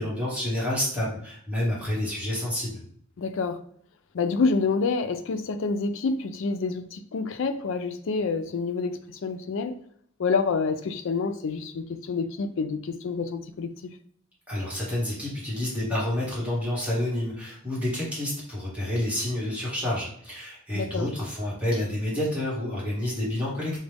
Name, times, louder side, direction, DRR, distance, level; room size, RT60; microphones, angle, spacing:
voice 1, 0.0-2.8 14.5-23.8, left 1 dB, 5° right, 1.3 m, -29 dB
voice 2, 3.2-3.6 4.1-9.8 10.2-13.7 20.7-21.1, left 4 dB, 65° left, 0.4 m, -28 dB
5.0 x 2.2 x 3.4 m
head